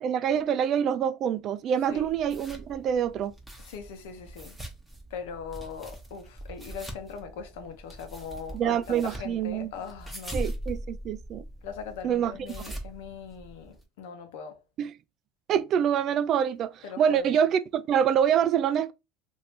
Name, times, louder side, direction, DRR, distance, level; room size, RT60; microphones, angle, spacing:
voice 1, 0.0-3.3 8.5-9.7 10.3-11.5 12.0-12.3 14.8-14.9 15.5-18.9, right 8 dB, 50° right, 0.3 m, -26 dB
sound 1, 1.9-13.8, right 1 dB, ahead, 1.0 m, -41 dB
voice 2, 3.6-4.6 5.1-10.4 11.6-14.6 16.8-17.3, left 6 dB, 85° left, 0.8 m, -40 dB
2.9 x 2.6 x 3.2 m
supercardioid pair, 105°, 0 cm